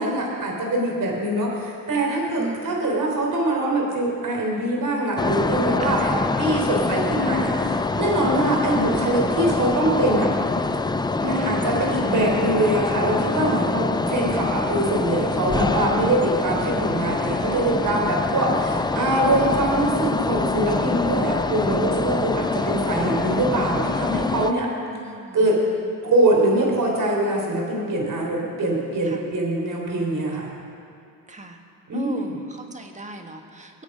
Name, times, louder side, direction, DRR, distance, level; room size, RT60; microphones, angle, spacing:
voice 1, 0.0-10.3 11.2-24.7 25.3-25.6 26.0-30.5 31.9-32.4, right 1 dB, 50° right, -1 dB, 4.1 m, -23 dB
voice 2, 2.4-2.9 5.8-6.1 8.2-8.6 11.3-11.6 18.9-19.3 22.6-23.0 24.9-25.4 25.7-25.8 29.0-29.2 31.3-31.6 31.9-33.8, right 2 dB, 15° right, 4 dB, 1.7 m, -38 dB
sound 1, 5.2-24.5, left 3 dB, 10° left, 0.4 m, -25 dB
22.5 x 8.2 x 5.1 m, 2.5 s
cardioid pair, 85°, 40 cm